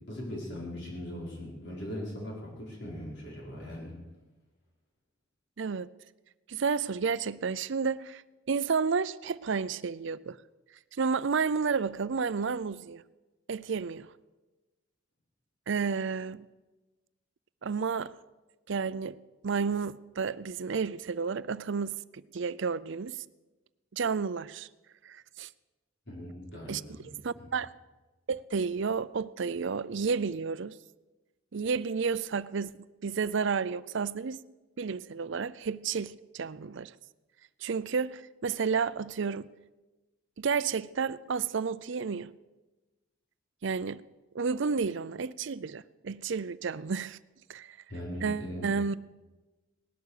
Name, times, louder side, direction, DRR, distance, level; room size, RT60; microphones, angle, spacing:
voice 1, 0.1-3.9 26.1-27.1 27.4-27.5 47.9-48.7, left 1 dB, 60° left, 5.3 m, -40 dB
voice 2, 5.6-5.9 6.5-8.2 8.5-10.4 11.0-13.0 13.5-14.1 15.7-16.4 17.6-18.1 18.7-19.2 19.4-22.0 22.3-23.2 23.9-24.7 25.0-25.5 26.7-26.8 27.2-27.7 28.3-30.7 31.5-32.7 33.0-34.4 34.8-36.9 37.6-39.5 40.4-42.3 43.6-44.0 44.3-47.2 47.5-47.8 48.2-49.0, right 5 dB, 60° right, 0.5 m, -31 dB
18.5 x 11.5 x 6.6 m
head